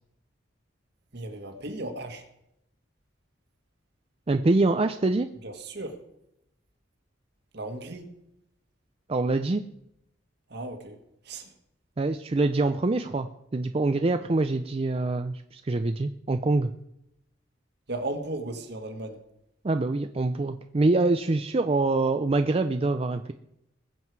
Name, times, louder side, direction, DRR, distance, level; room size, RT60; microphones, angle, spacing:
voice 1, 1.1-2.2 5.4-6.0 7.5-8.1 10.5-11.0 11.2-11.6 17.9-19.2, right 2 dB, 60° right, 1.7 m, -36 dB
voice 2, 4.3-5.3 9.1-9.6 12.0-13.3 13.5-16.7 19.6-23.3, right 2 dB, 30° right, 0.5 m, -25 dB
20.5 x 7.7 x 4.7 m
head